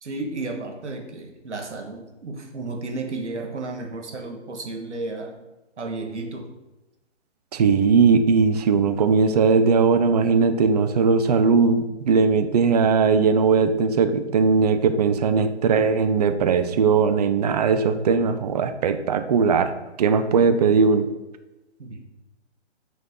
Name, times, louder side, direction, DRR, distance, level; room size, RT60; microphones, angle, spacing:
voice 1, 0.0-5.4 5.8-6.5 21.8-22.0, right 3 dB, 80° right, 3 dB, 1.5 m, -33 dB
voice 2, 7.5-19.7 20.0-21.1, right 5 dB, 35° right, 10 dB, 0.5 m, -19 dB
6.8 x 4.3 x 4.7 m, 1.0 s
hypercardioid pair, 140°, 34 cm